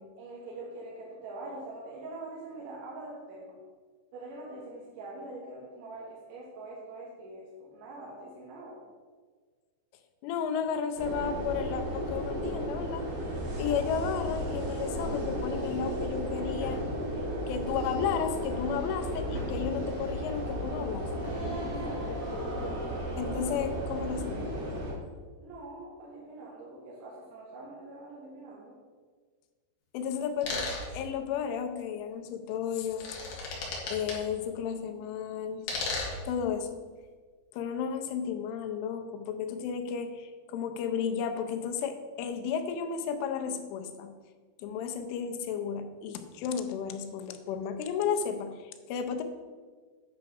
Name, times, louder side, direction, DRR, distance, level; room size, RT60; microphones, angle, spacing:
voice 1, 0.2-3.6 4.1-8.8 21.7-22.2 25.4-28.7, right 2 dB, 75° right, -5 dB, 3.9 m, -44 dB
voice 2, 10.2-13.1 13.6-17.0 17.5-21.1 23.2-24.5 29.9-30.7 30.9-33.2 33.9-35.7 36.3-36.8 37.5-44.2 44.6-49.2, left 7 dB, 90° left, 7 dB, 3.2 m, -33 dB
sound 1, 11.0-24.9, equal, 60° right, 3.9 m, -34 dB
sound 2, 16.6-17.1 19.3-19.8 21.2-21.6, equal, 10° right, 1.3 m, -40 dB
sound 3, 30.4-30.9 32.8-34.1 35.6-36.2, left 3 dB, 55° left, 2.7 m, -34 dB
9.8 x 4.8 x 6.1 m, 1.5 s
omnidirectional pair, 5.4 m